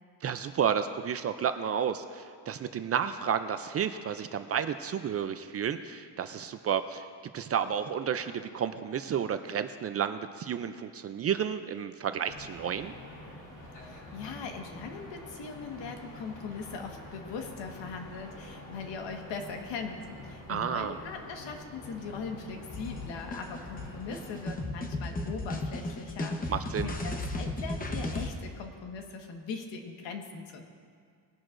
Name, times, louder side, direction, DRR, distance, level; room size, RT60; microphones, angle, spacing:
voice 1, 0.2-7.1 7.3-12.9 20.5-21.0 26.5-26.9, right 8 dB, 35° right, 10 dB, 0.4 m, -31 dB
sound 1, 12.3-24.5, left 1 dB, 40° left, 3.0 m, -47 dB
voice 2, 13.8-30.6, left 5 dB, 75° left, 3 dB, 1.6 m, -40 dB
sound 2, 22.7-28.3, left 2 dB, 20° left, 0.9 m, -35 dB
20.5 x 10.5 x 2.5 m, 2.1 s
cardioid pair, 135°, 44 cm